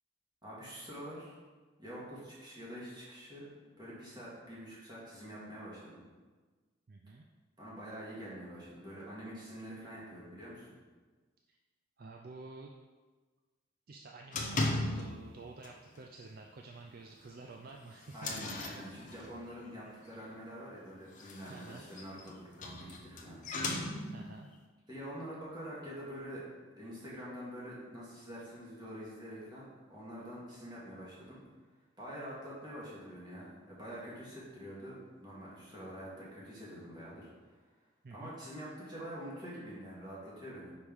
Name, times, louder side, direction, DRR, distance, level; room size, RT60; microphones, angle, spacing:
voice 1, 0.4-1.4 1.8-3.5 3.8-6.0 7.1-7.2 7.6-10.7 18.1-23.4 24.9-26.4 26.8-31.4 32.0-37.3 38.1-40.7, equal, 20° right, -7 dB, 1.9 m, -46 dB
voice 2, 6.9-7.3 12.0-12.7 13.9-18.3 21.5-21.8 24.1-24.5 38.0-38.3, right 3 dB, 45° right, 2 dB, 0.4 m, -50 dB
sound 1, 14.3-15.3 15.6-16.0 16.3-16.4 16.8-16.9 17.5-19.5 21.0-24.4, left 2 dB, 40° left, 0.7 m, -37 dB
5.3 x 5.0 x 4.6 m, 1.3 s
head